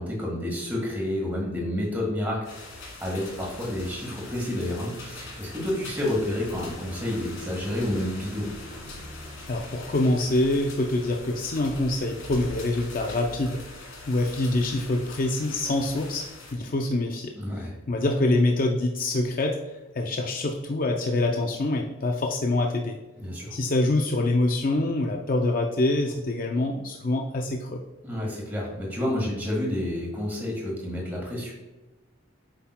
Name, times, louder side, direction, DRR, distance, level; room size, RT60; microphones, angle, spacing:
voice 1, 0.0-2.4 3.0-8.5 17.4-17.7 23.2-23.6 28.0-31.5, left 1 dB, 10° right, -3 dB, 1.6 m, -29 dB
sound 1, 2.4-16.5, left 2 dB, 80° left, 2.0 m, -42 dB
voice 2, 9.5-16.2 16.5-19.6 19.9-23.0 23.5-27.8, left 2 dB, 40° left, 2 dB, 0.4 m, -25 dB
8.3 x 5.7 x 2.2 m, 1.1 s
head